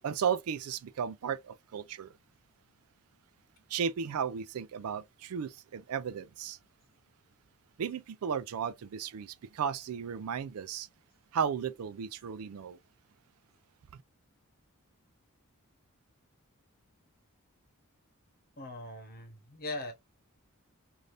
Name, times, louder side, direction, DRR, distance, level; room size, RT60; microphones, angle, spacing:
voice 1, 0.0-2.1 3.7-6.6 7.8-10.9 11.3-12.8, right 7 dB, 80° right, 0.4 m, -34 dB
voice 2, 18.6-19.9, left 2 dB, 45° left, 1.0 m, -40 dB
3.3 x 2.6 x 2.6 m
head